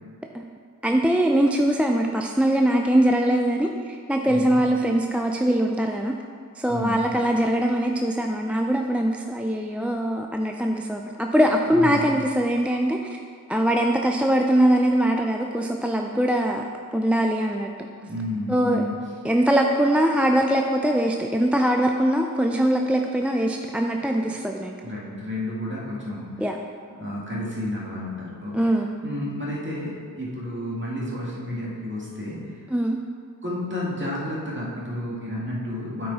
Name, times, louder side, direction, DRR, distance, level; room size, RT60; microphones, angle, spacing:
voice 1, 0.8-6.1 6.6-13.2 13.5-16.6 16.9-17.7 18.5-18.8 19.2-24.7 26.4-26.6 28.5-29.0 32.7-33.0, right 1 dB, 5° right, 2 dB, 0.3 m, -22 dB
voice 2, 6.7-7.1 11.6-12.1 18.0-18.9 24.8-26.5 27.0-28.7 29.0-32.6 33.4-36.1, left 1 dB, 35° right, -6 dB, 1.9 m, -31 dB
9.0 x 4.8 x 4.1 m, 2.1 s
wide cardioid pair, 75°, 34 cm